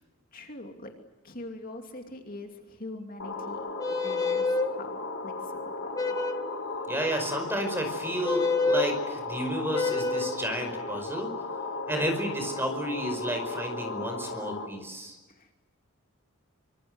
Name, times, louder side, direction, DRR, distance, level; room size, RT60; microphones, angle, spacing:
voice 1, 0.3-0.9 1.2-3.6 4.0-4.5 4.7-6.0 15.3-15.5, left 2 dB, 40° left, 4 dB, 2.6 m, -43 dB
sound 1, 3.2-14.7, left 3 dB, 65° left, 4.8 m, -36 dB
sound 2, 3.8-4.7 5.9-6.5 8.2-8.9 9.7-10.4, left 3 dB, 15° left, 1.6 m, -27 dB
voice 2, 6.9-11.3 11.9-15.2, equal, 10° right, 5 dB, 5.2 m, -32 dB
25.5 x 25.5 x 8.0 m, 1.1 s
head